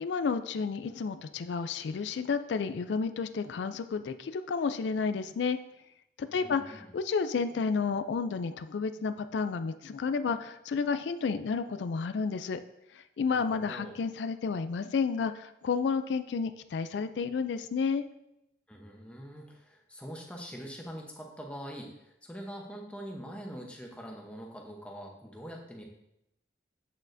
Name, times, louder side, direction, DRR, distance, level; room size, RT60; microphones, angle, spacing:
voice 1, 0.0-5.6 6.2-12.6 12.9-18.0, left 5 dB, 80° left, 11 dB, 0.4 m, -31 dB
voice 2, 6.3-6.9 13.3-13.9 18.7-25.8, equal, 5° left, 0 dB, 0.8 m, -44 dB
8.3 x 6.4 x 2.6 m, 0.85 s
head